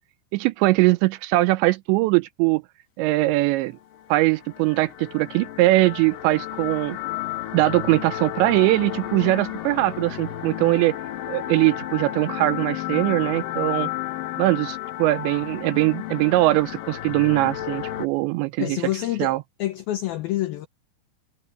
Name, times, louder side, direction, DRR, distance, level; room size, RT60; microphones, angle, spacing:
voice 1, 0.3-2.6 3.0-3.7 4.1-7.0 7.5-11.0 11.3-13.9 14.4-18.8 19.2-19.4, right 19 dB, 85° right, 2.7 m, -21 dB
sound 1, 3.9-18.1, left 13 dB, 65° left, 2.3 m, -32 dB
voice 2, 18.6-20.7, left 14 dB, 90° left, 2.1 m, -27 dB
omnidirectional pair, 5.5 m